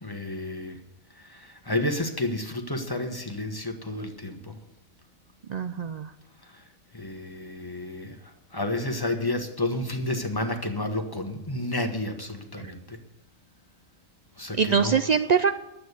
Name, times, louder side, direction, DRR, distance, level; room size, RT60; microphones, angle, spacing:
voice 1, 0.0-0.8 1.2-4.6 6.4-6.6 6.9-8.2 8.5-13.0 14.4-15.0, left 1 dB, 20° left, 5 dB, 1.2 m, -31 dB
voice 2, 5.5-6.1 12.6-12.7 14.6-15.5, right 6 dB, 85° right, 10 dB, 0.3 m, -23 dB
10.5 x 8.5 x 8.1 m, 0.88 s
omnidirectional pair, 1.4 m